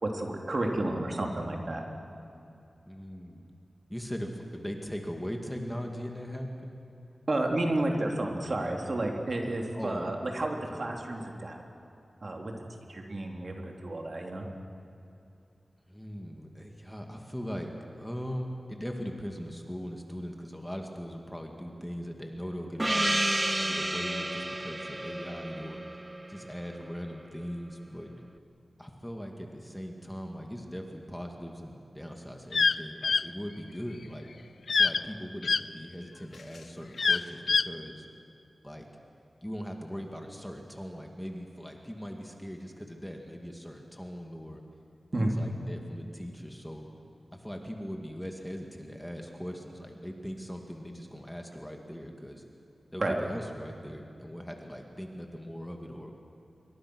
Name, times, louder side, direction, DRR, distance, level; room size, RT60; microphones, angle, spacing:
voice 1, 0.0-1.8 7.3-11.6 12.2-12.5 12.9-14.4 45.1-45.3 53.0-53.2, right 2 dB, 50° right, 1 dB, 3.3 m, -31 dB
voice 2, 2.9-3.5 3.9-6.7 9.7-10.2 10.7-11.0 15.9-17.7 18.0-23.2 23.6-25.8 26.3-28.1 28.8-34.3 34.7-38.1 38.6-38.9 39.4-44.6 45.1-46.9 47.3-52.4 52.9-56.1, equal, 5° left, 2 dB, 2.2 m, -40 dB
Gong, 22.8-27.1, right 1 dB, 15° right, 0.7 m, -31 dB
sound 1, 32.5-32.8 33.0-33.2 34.7-35.0 35.4-35.6 37.0-37.7, left 4 dB, 85° left, 0.5 m, -24 dB
27.5 x 24.0 x 6.3 m, 2.6 s
wide cardioid pair, 100°, 0 cm